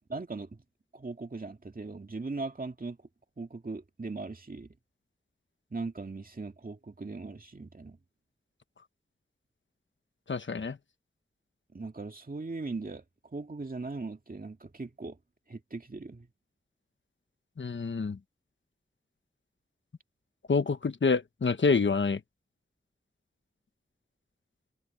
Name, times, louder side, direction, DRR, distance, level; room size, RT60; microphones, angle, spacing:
voice 1, 0.1-0.6 0.9-3.0 3.4-4.7 5.7-8.0 11.7-13.0 13.3-15.2 15.5-16.3, right 3 dB, 45° right, 2.2 m, -39 dB
voice 2, 10.3-10.8 17.6-18.2 20.5-22.2, left 4 dB, 70° left, 1.2 m, -27 dB
wide cardioid pair, 50°, 20 cm